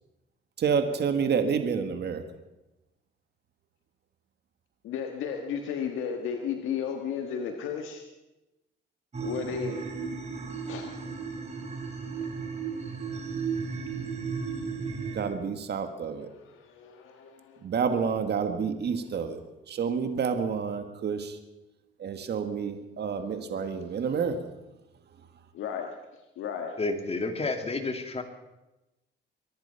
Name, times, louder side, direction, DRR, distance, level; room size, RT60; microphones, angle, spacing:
voice 1, 0.6-2.2 15.1-16.3 17.6-19.4 19.7-21.4 22.0-24.5, right 6 dB, 55° right, 8 dB, 1.7 m, -29 dB
voice 2, 4.8-8.0 9.2-9.8 10.6-10.9 16.5-17.6 25.5-25.9 26.4-26.8, left 7 dB, 90° left, 4 dB, 1.5 m, -34 dB
sound 1, 9.1-15.2, right 5 dB, 35° right, 4.6 m, -34 dB
voice 3, 26.8-28.2, left 3 dB, 30° left, 6 dB, 2.3 m, -30 dB
24.0 x 10.5 x 5.7 m, 0.99 s
cardioid pair, 90°, 20 cm